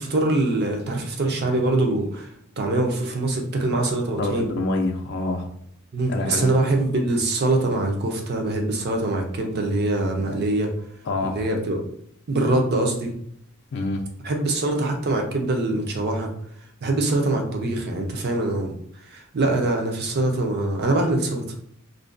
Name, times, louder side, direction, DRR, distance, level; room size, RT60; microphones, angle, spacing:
voice 1, 0.0-2.3 2.6-4.5 5.9-10.7 11.2-11.8 12.3-13.1 14.2-16.3 16.8-18.7 19.0-21.4, right 2 dB, 50° right, 2 dB, 0.5 m, -23 dB
voice 2, 4.2-5.5 6.1-6.7 11.0-11.4 13.7-14.0, left 2 dB, 50° left, 3 dB, 0.4 m, -26 dB
2.5 x 2.2 x 2.4 m, 0.70 s
head